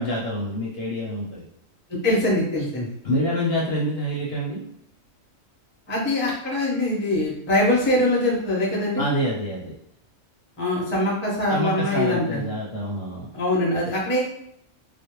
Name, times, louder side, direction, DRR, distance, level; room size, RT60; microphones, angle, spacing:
voice 1, 0.0-1.4 3.0-4.6 9.0-9.8 11.5-13.3, equal, 65° left, -4 dB, 0.7 m, -26 dB
voice 2, 2.0-2.9 5.9-9.1 10.6-12.4 13.3-14.2, left 1 dB, 15° left, -5 dB, 0.3 m, -23 dB
2.4 x 2.1 x 2.9 m, 0.73 s
omnidirectional pair, 1.4 m